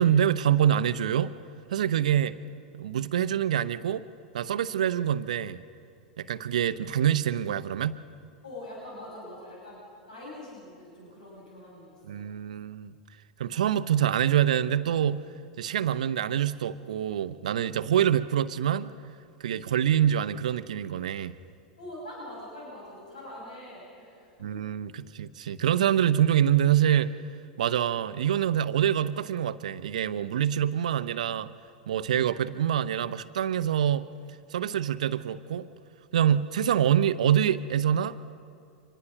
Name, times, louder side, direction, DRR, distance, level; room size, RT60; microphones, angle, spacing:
voice 1, 0.0-1.3 1.7-2.4 2.7-4.0 4.3-5.6 6.2-8.0 12.1-12.9 13.4-15.2 15.6-18.9 19.4-21.4 24.4-27.2 27.6-31.5 31.9-34.1 34.5-35.7 36.1-38.2, right 10 dB, 75° right, 14 dB, 0.7 m, -25 dB
voice 2, 8.4-9.8 10.1-12.2 21.8-24.6, left 1 dB, 80° left, -4 dB, 6.6 m, -43 dB
24.5 x 19.5 x 6.0 m, 2.3 s
hypercardioid pair, 90°, 4 cm